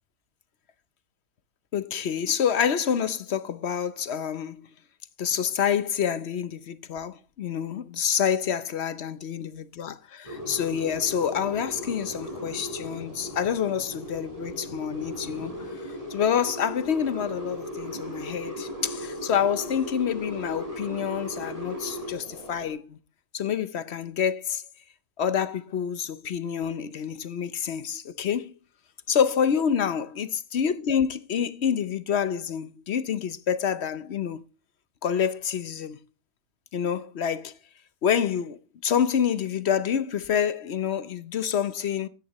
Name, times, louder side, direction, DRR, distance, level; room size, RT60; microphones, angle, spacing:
voice 1, 1.7-4.6 5.2-15.5 16.1-23.0 23.3-24.6 25.2-28.5 29.1-34.4 35.0-36.0 36.7-37.5 38.0-38.6 38.8-42.1, left 8 dB, 55° left, 0.9 m, -27 dB
sound 1, 10.2-22.7, left 1 dB, 25° right, 3.8 m, -37 dB
16.0 x 10.0 x 3.0 m
omnidirectional pair, 1.6 m